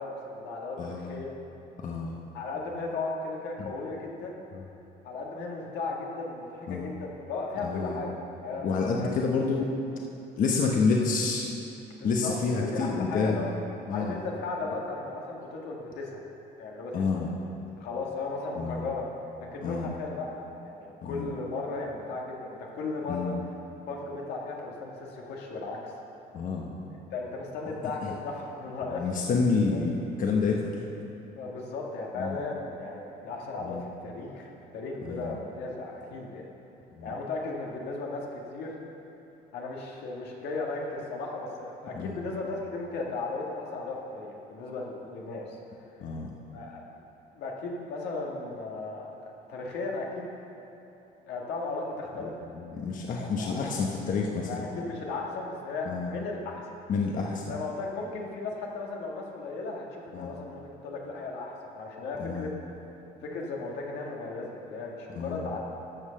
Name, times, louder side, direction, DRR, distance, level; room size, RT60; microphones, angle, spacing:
voice 1, 0.0-1.3 2.3-4.4 5.0-8.7 9.0-9.2 11.9-13.5 13.9-16.2 16.6-17.3 17.8-19.1 19.4-23.4 23.9-25.9 27.1-29.1 29.7-29.8 31.4-36.5 37.0-38.8 39.5-45.6 46.5-47.0 47.4-50.3 51.3-52.3 53.1-53.9 54.5-56.6 57.5-62.5 63.2-65.6, left 3 dB, 80° left, -1 dB, 1.8 m, -36 dB
voice 2, 0.8-1.1 1.8-2.2 3.6-3.7 4.5-4.6 6.7-6.9 7.6-8.0 8.6-9.7 10.4-11.5 12.0-13.5 13.9-14.2 16.9-17.3 18.6-18.9 19.6-19.9 21.0-21.3 23.1-23.4 26.3-26.7 28.0-28.1 28.9-30.7 32.2-32.4 33.6-34.0 35.0-35.3 37.0-37.1 41.9-42.2 46.0-46.3 52.5-54.7 55.9-56.1 56.9-57.4 60.1-60.4 62.2-62.5 65.2-65.5, left 4 dB, 50° left, -1 dB, 1.1 m, -29 dB
13.5 x 5.6 x 6.5 m, 2.9 s
cardioid pair, 110°, 17 cm